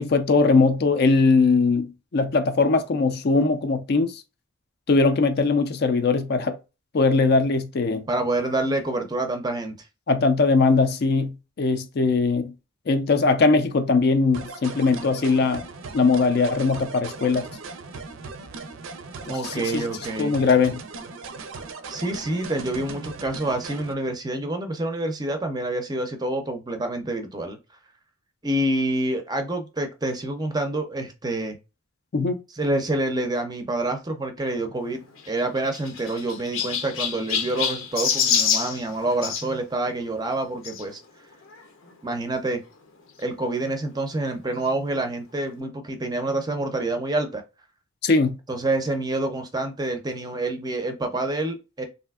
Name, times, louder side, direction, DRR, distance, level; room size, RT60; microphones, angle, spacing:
voice 1, 0.0-4.2 4.9-6.6 6.9-8.1 10.1-12.5 12.9-15.6 15.9-17.5 19.3-19.8 20.2-20.8 32.1-32.4 48.0-48.4, left 4 dB, 50° left, 0.4 m, -20 dB
voice 2, 8.1-9.8 19.3-20.4 21.9-27.6 28.4-31.6 32.5-35.0 35.3-41.0 42.0-42.6 43.2-47.4 48.5-51.8, right 2 dB, 20° right, 0.5 m, -27 dB
sound 1, 14.3-23.9, right 4 dB, 75° right, 0.5 m, -38 dB
Chirp tweet, 35.1-39.5 40.6-40.8 41.5-41.6 41.8-41.9 43.2-43.3, left 7 dB, 80° left, 0.8 m, -26 dB
3.3 x 2.6 x 2.3 m
head